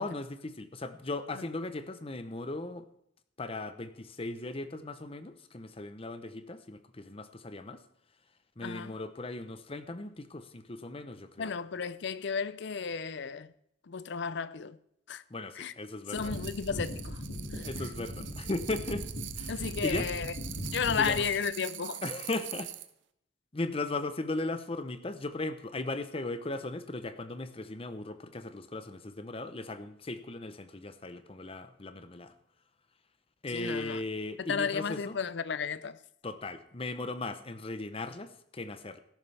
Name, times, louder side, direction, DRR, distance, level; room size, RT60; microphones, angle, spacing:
voice 1, 0.0-2.9 3.4-7.8 8.6-11.5 15.3-16.3 17.6-19.0 19.4-19.5 19.8-20.1 20.9-21.2 22.0-22.7 23.5-32.3 33.4-35.2 36.2-39.0, left 2 dB, 30° left, 0.8 m, -37 dB
voice 2, 8.6-8.9 11.4-13.5 13.8-14.8 15.1-15.2 15.6-15.7 16.1-17.2 17.5-17.7 19.5-20.3 20.7-22.0 33.5-34.0 34.4-36.0, left 6 dB, 65° left, 0.5 m, -33 dB
sound 1, 16.1-21.3, equal, 85° left, 2.3 m, -39 dB
sound 2, 16.1-22.9, right 14 dB, 70° right, 0.7 m, -44 dB
13.5 x 11.0 x 3.4 m
head